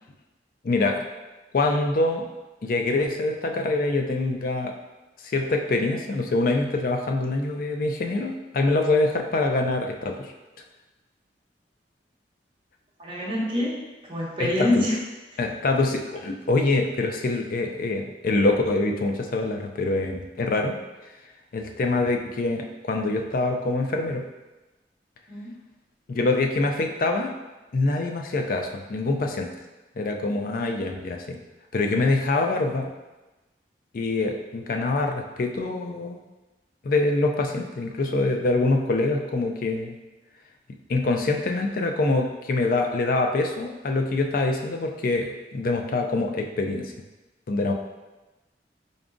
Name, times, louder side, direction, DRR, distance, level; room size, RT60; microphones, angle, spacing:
voice 1, 0.6-1.0 1.5-2.3 2.6-4.7 5.2-10.3 14.4-14.8 15.4-20.7 21.5-24.2 26.1-27.3 27.7-29.5 30.0-31.4 31.7-32.9 33.9-36.2 36.8-40.0 40.9-46.9 47.5-47.7, left 2 dB, 50° left, 3 dB, 0.4 m, -25 dB
voice 2, 13.0-15.0 25.3-25.5, left 1 dB, 30° right, -6 dB, 0.9 m, -26 dB
3.9 x 3.6 x 2.5 m, 1.1 s
head